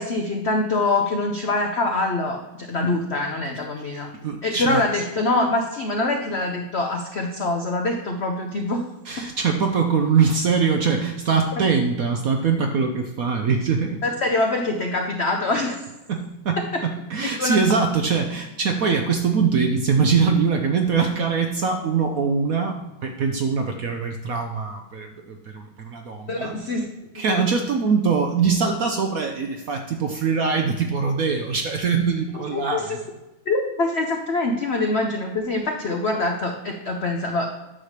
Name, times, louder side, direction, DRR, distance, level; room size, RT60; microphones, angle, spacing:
voice 1, 0.0-4.1 4.4-8.8 9.2-9.3 14.0-15.8 16.7-16.8 17.2-17.6 26.3-27.4 32.5-33.0 33.5-37.5, left 2 dB, 70° left, 3 dB, 0.6 m, -24 dB
voice 2, 4.2-4.8 9.1-14.0 16.1-26.5 27.1-33.0, right 5 dB, 65° right, 4 dB, 0.9 m, -23 dB
9.7 x 3.2 x 6.5 m, 1.0 s
omnidirectional pair, 2.2 m